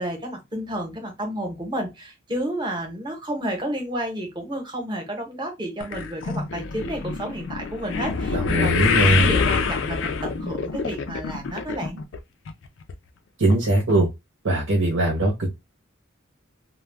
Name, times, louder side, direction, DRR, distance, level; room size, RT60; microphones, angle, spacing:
voice 1, 0.0-12.0, right 1 dB, 20° right, 0.9 m, -31 dB
sound 1, 5.8-12.2 12.5-12.9 13.5-13.6 13.9-14.0, left 5 dB, 65° left, 0.4 m, -26 dB
voice 2, 8.3-9.3 13.4-14.1 14.4-15.5, right 1 dB, 70° right, 0.8 m, -20 dB
2.2 x 2.2 x 3.3 m
head